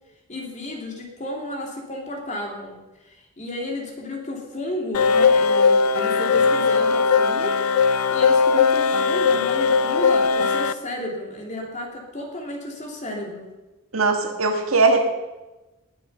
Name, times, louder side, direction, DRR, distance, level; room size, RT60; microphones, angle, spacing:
voice 1, 0.3-7.6 7.9-13.5, left 1 dB, 35° left, 0 dB, 3.0 m, -33 dB
sound 1, 4.9-10.7, left 5 dB, 85° left, 0.6 m, -19 dB
voice 2, 13.9-15.0, right 3 dB, 70° right, 4 dB, 1.8 m, -19 dB
19.5 x 8.4 x 5.5 m, 1.1 s
head